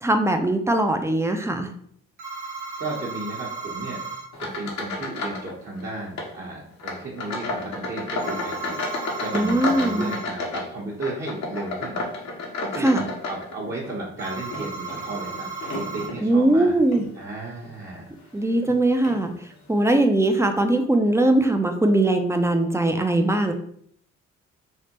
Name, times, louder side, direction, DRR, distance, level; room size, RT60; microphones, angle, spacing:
voice 1, 0.0-1.7 9.3-10.1 12.8-13.1 16.2-17.1 18.3-19.3 19.7-23.5, right 1 dB, 10° right, 5 dB, 0.5 m, -20 dB
sound 1, 2.2-4.3 8.2-10.3 14.2-16.1, right 4 dB, 80° right, 1.0 m, -35 dB
voice 2, 2.8-4.0 4.4-12.3 12.6-12.9 13.3-16.8 17.1-18.3, right 2 dB, 35° right, -5 dB, 1.0 m, -34 dB
sound 2, 4.3-5.5 5.8-6.3 6.8-13.9 14.4-16.2 16.8-17.1 17.6-17.8 18.6-18.7 19.0-19.2, left 2 dB, 65° left, 0.8 m, -32 dB
3.3 x 2.1 x 2.9 m, 0.64 s
supercardioid pair, 50°, 30 cm